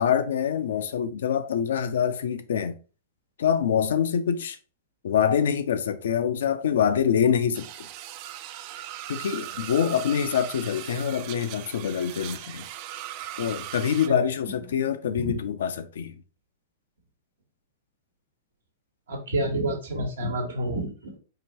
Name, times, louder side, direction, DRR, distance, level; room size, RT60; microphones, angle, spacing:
voice 1, 0.0-2.8 3.4-4.6 5.0-7.9 9.1-12.7 13.4-16.2, left 8 dB, 70° left, 0.5 m, -25 dB
sound 1, 7.5-14.1, right 13 dB, 50° right, 0.3 m, -39 dB
voice 2, 19.1-21.2, right 1 dB, 80° right, 1.2 m, -29 dB
4.7 x 2.6 x 2.8 m
hypercardioid pair, 110°, 0 cm